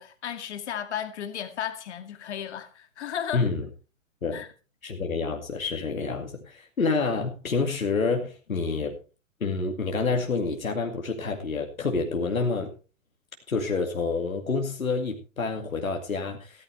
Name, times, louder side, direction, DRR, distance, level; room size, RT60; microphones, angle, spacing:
voice 1, 0.0-3.5 4.3-4.5, left 9 dB, 55° left, 2.2 m, -34 dB
voice 2, 3.3-3.6 4.2-4.4 4.8-9.0 9.4-12.7 13.5-16.6, left 4 dB, 85° left, 2.3 m, -28 dB
15.5 x 13.5 x 3.3 m
figure-of-eight pair, 125°, 40 cm